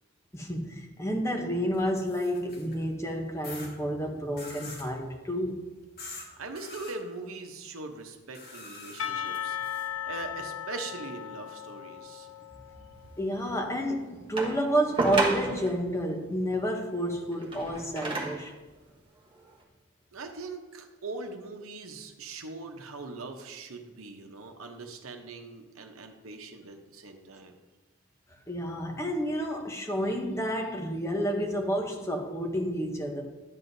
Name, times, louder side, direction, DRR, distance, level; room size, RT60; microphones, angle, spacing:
voice 1, 0.3-5.7 13.2-18.5 28.5-33.2, equal, 15° left, 0.8 m, -30 dB
sound 1, 1.7-2.8 3.4-3.7 4.4-4.9 6.0-6.3 6.6-6.9 8.3-9.9, left 3 dB, 45° left, 1.9 m, -44 dB
voice 2, 6.4-9.6 10.0-12.3 20.1-27.5, right 3 dB, 80° right, 0.9 m, -41 dB
Percussion / Church bell, 9.0-13.4, left 9 dB, 75° left, 0.6 m, -37 dB
sound 2, 14.4-15.8 17.3-18.5 19.3-19.4, right 2 dB, 25° right, 1.1 m, -31 dB
10.5 x 7.6 x 2.7 m
head